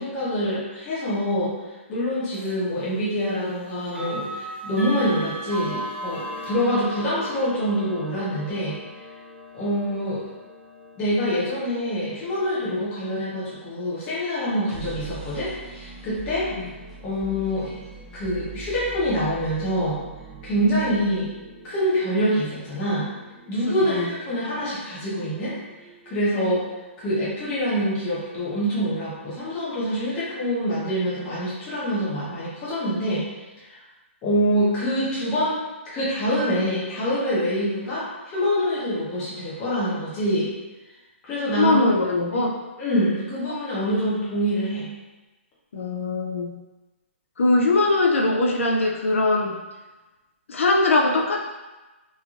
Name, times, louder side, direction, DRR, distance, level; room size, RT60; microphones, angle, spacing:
voice 1, 0.0-1.5 1.9-8.8 9.5-10.2 11.0-16.5 17.0-17.7 18.1-20.0 20.4-21.3 21.6-23.1 23.5-25.5 26.1-26.7 27.0-33.2 34.2-35.6 35.9-40.5 41.2-41.8 42.3-42.4 42.8-44.9, equal, 15° left, -9 dB, 0.7 m, -25 dB
sound 1, 2.3-2.5 3.8-14.7, equal, 80° right, 1.2 m, -38 dB
sound 2, 14.5-28.2, right 4 dB, ahead, 0.3 m, -44 dB
voice 2, 23.7-24.1 41.5-42.6 45.7-46.6 47.4-49.6 50.5-51.4, left 2 dB, 70° left, 0 dB, 0.4 m, -21 dB
3.0 x 2.5 x 2.4 m, 1.1 s
hypercardioid pair, 175°, 7 cm